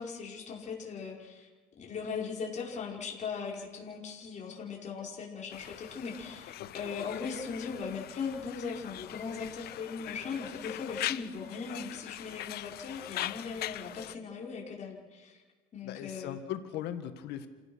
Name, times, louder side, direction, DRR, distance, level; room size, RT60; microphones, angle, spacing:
voice 1, 0.0-1.5 1.8-15.4 15.7-16.4, left 5 dB, 45° left, -2 dB, 5.3 m, -39 dB
Conversation, 5.5-14.2, left 14 dB, 70° left, 0.7 m, -41 dB
voice 2, 15.8-17.5, left 10 dB, 85° left, 8 dB, 1.9 m, -39 dB
28.5 x 16.5 x 6.5 m, 1.3 s
cardioid pair, 110°, 17 cm